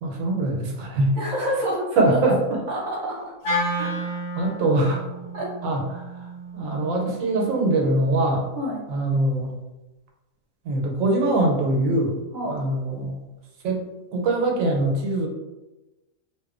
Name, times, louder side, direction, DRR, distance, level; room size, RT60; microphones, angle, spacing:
voice 1, 0.0-1.2 2.0-2.6 3.8-5.0 5.6-8.5 8.9-9.5 10.6-12.2 12.5-13.2 13.6-13.8 14.1-15.3, right 2 dB, 85° right, 1 dB, 1.0 m, -23 dB
voice 2, 1.2-2.2 2.7-3.2 5.3-5.5 8.5-8.8 12.3-12.6, equal, 45° right, -4 dB, 0.6 m, -27 dB
Wind instrument woodwind instrument, 3.4-7.7, equal, 75° left, 1.3 m, -31 dB
2.8 x 2.1 x 2.4 m, 1.0 s
omnidirectional pair, 1.4 m